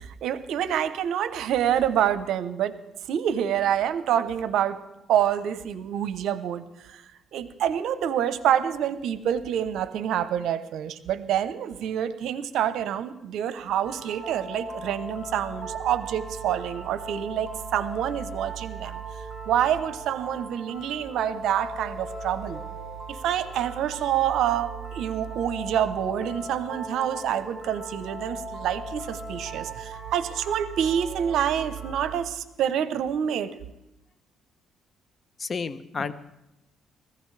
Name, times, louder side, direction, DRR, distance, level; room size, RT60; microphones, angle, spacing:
voice 1, 0.0-2.8 3.1-4.8 5.1-19.0 19.5-22.6 23.1-33.5, right 10 dB, 80° right, 13 dB, 0.8 m, -27 dB
sound 1, 13.8-32.2, right 3 dB, ahead, 3.9 m, -38 dB
voice 2, 35.4-36.1, left 5 dB, 40° left, 14 dB, 0.7 m, -31 dB
20.0 x 15.0 x 3.3 m, 0.91 s
cardioid pair, 95°, 0 cm